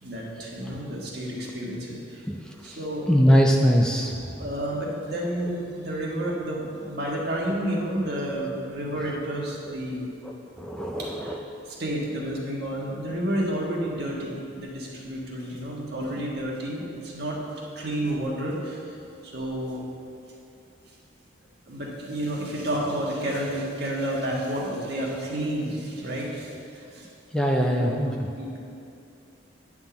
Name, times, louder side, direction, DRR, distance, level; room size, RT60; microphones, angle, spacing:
voice 1, 0.0-2.3 2.6-3.2 4.0-10.1 11.0-18.9 19.2-19.9 21.7-27.1 27.6-28.6, right 1 dB, 55° right, -3 dB, 1.5 m, -31 dB
voice 2, 3.1-4.1 10.6-11.0 27.3-28.1, equal, 5° left, 0 dB, 0.3 m, -20 dB
9.4 x 3.6 x 6.9 m, 2.6 s
head